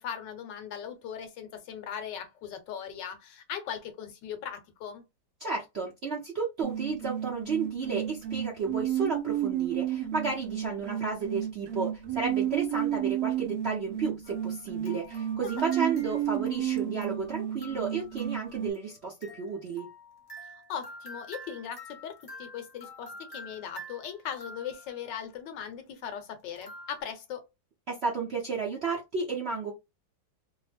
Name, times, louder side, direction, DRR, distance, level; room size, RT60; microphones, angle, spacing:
voice 1, 0.0-5.0 15.4-15.7 20.5-27.4, left 8 dB, 70° left, 1.2 m, -39 dB
voice 2, 5.4-19.9 27.9-29.7, right 4 dB, 60° right, 0.7 m, -32 dB
sound 1, 6.6-18.7, right 11 dB, 75° right, 1.3 m, -32 dB
sound 2, 14.2-25.1 26.6-27.0, equal, 25° left, 0.5 m, -48 dB
3.1 x 2.0 x 3.2 m
omnidirectional pair, 2.1 m